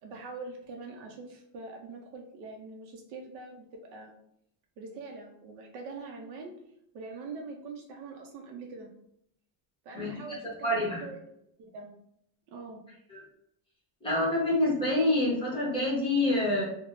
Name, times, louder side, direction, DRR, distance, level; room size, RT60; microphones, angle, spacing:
voice 1, 0.0-4.1 4.8-6.5 6.9-8.9 9.8-11.2 11.6-11.9 12.5-12.8, right 3 dB, 55° right, 1 dB, 0.5 m, -43 dB
voice 2, 10.6-11.0 13.1-13.2 14.0-16.6, left 1 dB, 10° left, -7 dB, 0.8 m, -26 dB
3.4 x 2.0 x 2.4 m, 0.75 s
cardioid pair, 175°, 48 cm